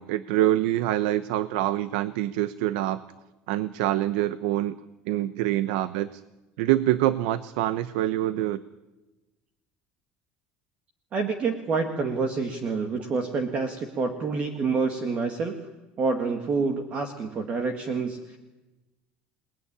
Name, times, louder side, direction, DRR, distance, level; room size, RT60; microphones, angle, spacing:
voice 1, 0.0-3.0 3.5-4.8 5.0-6.2 6.6-8.6, right 14 dB, 85° right, 14 dB, 0.9 m, -25 dB
voice 2, 11.1-15.6 16.0-18.4, right 4 dB, 30° right, 6 dB, 1.8 m, -27 dB
29.0 x 19.5 x 9.9 m, 1.1 s
cardioid pair, 180°, 5 cm